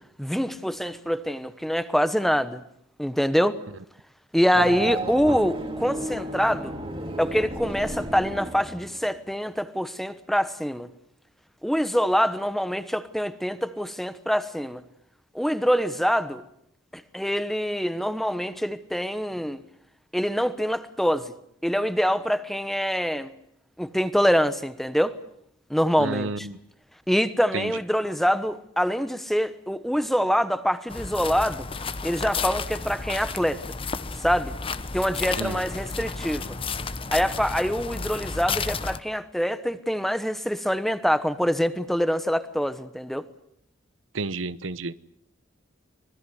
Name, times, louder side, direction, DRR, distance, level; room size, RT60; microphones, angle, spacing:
voice 1, 0.2-2.6 3.0-3.6 4.3-6.8 7.2-10.9 11.6-14.8 15.3-16.4 16.9-19.6 20.1-21.3 21.6-23.3 23.8-25.2 25.7-26.5 27.1-31.7 32.0-33.6 34.2-34.5 34.9-36.6 37.1-43.2, equal, ahead, 1.1 m, -25 dB
Race car auto racing / Accelerating revving vroom, 4.5-9.2, right 2 dB, 25° right, 2.4 m, -32 dB
voice 2, 26.0-26.5 27.5-27.7 35.4-35.6 44.1-44.9, right 3 dB, 85° right, 0.9 m, -30 dB
sound 1, 30.9-39.0, left 4 dB, 30° left, 0.9 m, -32 dB
25.0 x 20.0 x 8.0 m
head